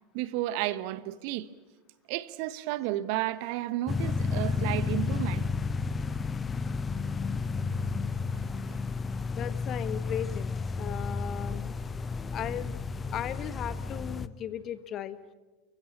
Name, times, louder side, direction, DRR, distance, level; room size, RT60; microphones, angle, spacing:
voice 1, 0.1-1.5 2.1-5.5 8.3-8.4 8.7-8.8, right 15 dB, 55° right, 1.1 m, -32 dB
sound 1, 3.9-14.3, left 4 dB, 20° left, 0.8 m, -32 dB
voice 2, 9.3-11.7 12.3-12.7 13.1-15.2, left 10 dB, 40° left, 1.4 m, -36 dB
29.5 x 16.0 x 8.6 m
figure-of-eight pair, 80°, 0 cm